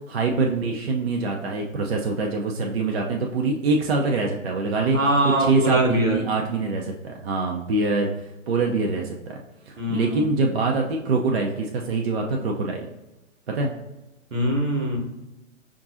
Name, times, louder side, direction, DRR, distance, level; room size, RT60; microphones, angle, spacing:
voice 1, 0.1-5.0 5.2-8.1 8.5-9.4 9.7-12.9 13.5-13.7, right 3 dB, 50° right, 0 dB, 0.5 m, -24 dB
voice 2, 4.9-6.2 9.8-10.3 14.3-15.0, right 1 dB, 80° right, 1 dB, 1.1 m, -22 dB
5.2 x 2.4 x 2.6 m, 0.99 s
figure-of-eight pair, 120°, 39 cm